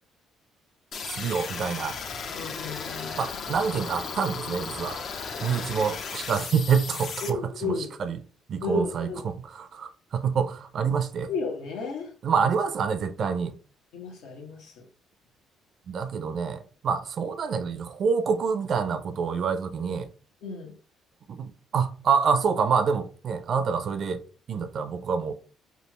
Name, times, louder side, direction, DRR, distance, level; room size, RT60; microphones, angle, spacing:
sound 1, 0.9-7.3, left 5 dB, 55° left, 0.5 m, -35 dB
voice 1, 1.1-2.0 3.2-5.0 5.4-7.7 8.0-8.2 8.5-11.3 12.2-13.5 15.9-20.1 21.3-25.3, right 6 dB, 55° right, 0.4 m, -27 dB
voice 2, 2.3-3.2 5.4-5.7 7.2-7.9 8.6-9.2 11.3-12.1 12.4-12.5 13.9-14.8 20.4-20.7, left 3 dB, 80° left, 1.0 m, -33 dB
3.3 x 2.4 x 3.0 m
cardioid pair, 90°, 0 cm